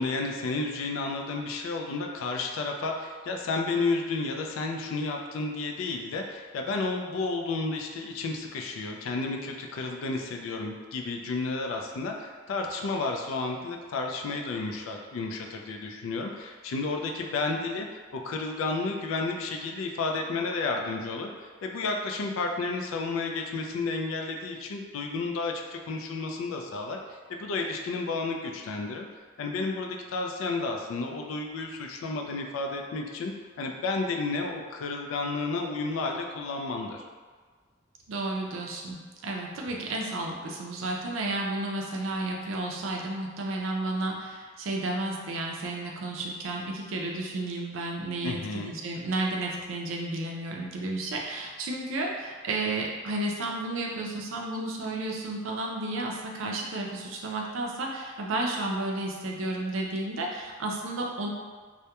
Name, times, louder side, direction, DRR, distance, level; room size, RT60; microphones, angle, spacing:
voice 1, 0.0-21.3 21.6-29.1 29.4-33.3 33.6-37.0 48.2-48.7, left 3 dB, 80° left, 2 dB, 0.3 m, -32 dB
voice 2, 38.1-48.4 48.6-61.3, right 2 dB, 70° right, 0 dB, 0.4 m, -32 dB
2.2 x 2.1 x 2.8 m, 1.5 s
head